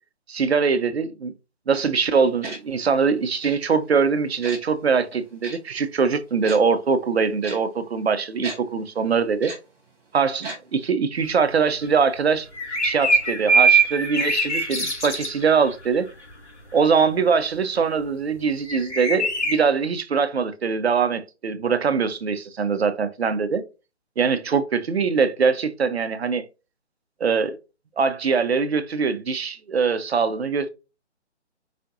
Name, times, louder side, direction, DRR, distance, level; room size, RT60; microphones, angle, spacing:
voice 1, 0.3-1.3 1.7-9.5 10.1-12.5 12.8-16.1 16.7-23.6 24.2-26.4 27.2-27.6 28.0-30.7, right 5 dB, 60° right, 0.8 m, -22 dB
Tick-tock, 2.4-2.6 3.4-3.6 4.4-4.6 5.4-5.6 6.4-6.6 7.4-7.6 8.4-8.6 9.4-9.6 10.4-10.6 10.8-10.9, right 2 dB, 5° right, 1.5 m, -34 dB
sound 1, 12.5-15.7 18.7-19.6, right 3 dB, 75° left, 2.1 m, -21 dB
5.1 x 4.1 x 2.5 m
figure-of-eight pair, 155°, 36 cm